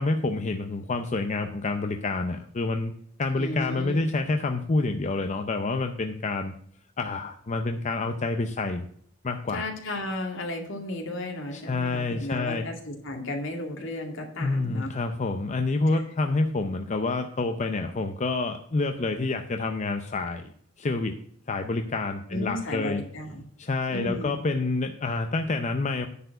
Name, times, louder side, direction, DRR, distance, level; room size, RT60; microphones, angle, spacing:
voice 1, 0.0-2.9 3.2-6.5 7.0-8.8 9.2-9.7 11.5-12.7 14.4-20.5 20.8-21.2 21.5-23.0 23.6-26.1, left 3 dB, 35° left, 6 dB, 0.6 m, -28 dB
voice 2, 3.4-4.0 9.5-14.9 15.9-16.1 22.3-23.4 23.9-24.3, left 1 dB, 65° left, 2 dB, 2.3 m, -34 dB
10.0 x 4.6 x 7.8 m, 0.63 s
head